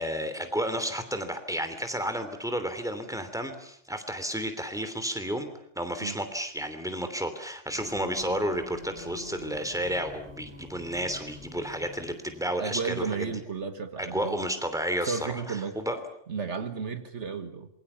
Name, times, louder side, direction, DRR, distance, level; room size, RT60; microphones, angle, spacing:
voice 1, 0.0-5.5 5.7-13.4 14.0-16.0, equal, 5° right, 8 dB, 3.1 m, -32 dB
Singing, 7.7-13.2, left 2 dB, 25° right, 5.4 m, -46 dB
voice 2, 12.6-14.4 15.1-15.8 16.3-17.7, right 5 dB, 70° right, 9 dB, 1.8 m, -33 dB
27.0 x 23.0 x 7.1 m, 0.68 s
omnidirectional pair, 1.2 m